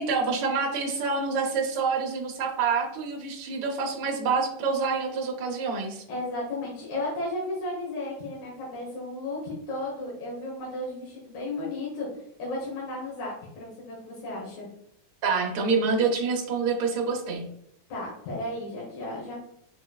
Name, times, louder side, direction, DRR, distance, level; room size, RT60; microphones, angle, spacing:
voice 1, 0.0-6.0 15.2-17.5, right 4 dB, 90° right, 0 dB, 1.1 m, -27 dB
voice 2, 6.1-14.7 17.9-19.4, left 2 dB, 75° left, -6 dB, 2.4 m, -34 dB
6.5 x 3.1 x 2.3 m, 0.73 s
omnidirectional pair, 3.4 m